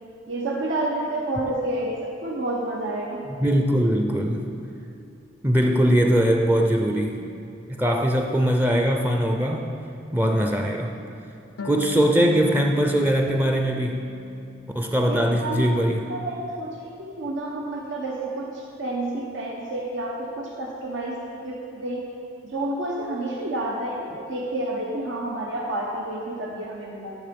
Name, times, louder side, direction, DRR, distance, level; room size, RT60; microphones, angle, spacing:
voice 1, 0.3-3.2 15.1-15.7 16.1-21.2 21.4-22.0 22.4-27.1, right 1 dB, 85° right, -2 dB, 1.0 m, -29 dB
voice 2, 3.4-4.4 5.4-7.2 7.7-9.7 10.1-10.9 11.6-14.0 14.7-16.0, equal, 10° right, 3 dB, 0.4 m, -21 dB
Harp, 11.6-15.0 15.3-16.4, left 4 dB, 90° left, 0.6 m, -40 dB
11.0 x 6.7 x 5.2 m, 2.6 s
head